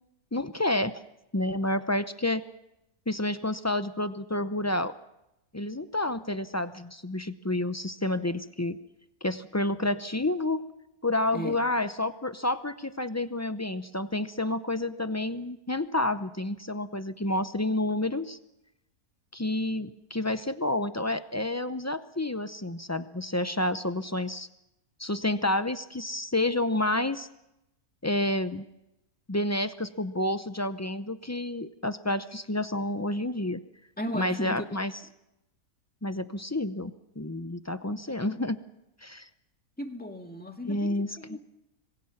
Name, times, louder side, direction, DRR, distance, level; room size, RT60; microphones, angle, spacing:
voice 1, 0.3-1.0 1.3-2.4 3.1-4.9 5.5-8.8 9.2-10.6 11.0-18.4 19.3-24.5 25.0-27.3 28.0-28.7 29.3-33.6 34.1-34.9 36.0-38.6 39.0-39.3 40.7-41.4, left 1 dB, 25° left, 11 dB, 0.3 m, -29 dB
voice 2, 34.0-34.7 37.8-38.0 39.8-41.4, left 1 dB, 5° left, 4 dB, 1.8 m, -36 dB
26.0 x 22.0 x 5.9 m, 0.88 s
omnidirectional pair, 1.6 m